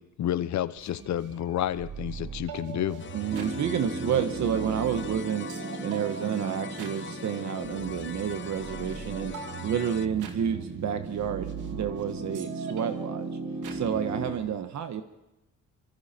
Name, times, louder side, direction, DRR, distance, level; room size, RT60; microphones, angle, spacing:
voice 1, 0.0-3.0, left 11 dB, 65° left, 15 dB, 1.0 m, -30 dB
sound 1, 0.8-14.5, right 7 dB, 80° right, 2.6 m, -41 dB
sound 2, 3.0-10.1, left 7 dB, 40° left, 0.9 m, -42 dB
voice 2, 3.1-5.5 5.8-9.4 9.6-13.3 13.7-15.0, right 8 dB, 65° right, 8 dB, 1.5 m, -30 dB
Piano, 3.3-14.3, right 2 dB, 45° right, 5.9 m, -38 dB
26.0 x 25.0 x 4.5 m, 0.94 s
cardioid pair, 90°, 30 cm